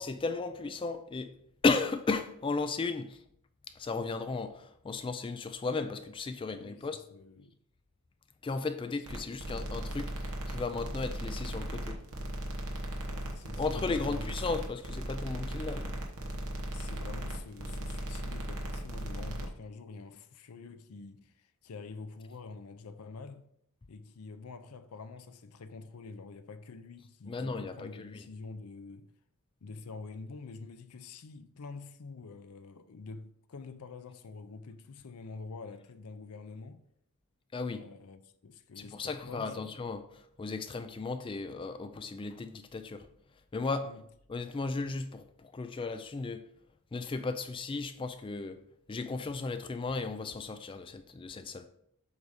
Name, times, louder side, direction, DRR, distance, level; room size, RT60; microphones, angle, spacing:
voice 1, 0.0-1.3 1.6-3.2 3.8-7.0 8.4-12.0 13.6-16.0 27.3-28.2 37.5-37.8 38.8-43.1 43.5-43.9 44.3-46.4 46.9-48.6 48.9-51.7, left 3 dB, 20° left, 0.3 m, -35 dB
voice 2, 6.5-7.6 9.1-9.3 13.0-14.4 16.7-23.5 23.9-29.1 29.6-36.8 37.8-39.7 43.8-44.0, left 4 dB, 80° left, 0.5 m, -47 dB
sound 1, 9.1-19.5, right 1 dB, 75° right, 1.1 m, -37 dB
7.8 x 2.7 x 5.0 m
head